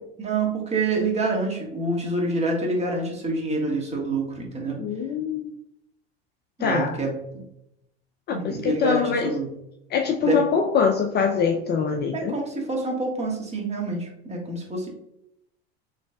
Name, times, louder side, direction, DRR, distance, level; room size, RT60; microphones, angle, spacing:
voice 1, 0.2-4.8 6.6-7.4 8.3-9.5 10.2-10.4 12.1-14.9, right 2 dB, 20° right, 0 dB, 1.4 m, -27 dB
voice 2, 4.8-5.5 6.6-7.0 8.3-9.3 9.9-12.3, left 6 dB, 30° left, 4 dB, 0.5 m, -24 dB
6.2 x 3.2 x 2.3 m, 0.81 s
hypercardioid pair, 90°, 32 cm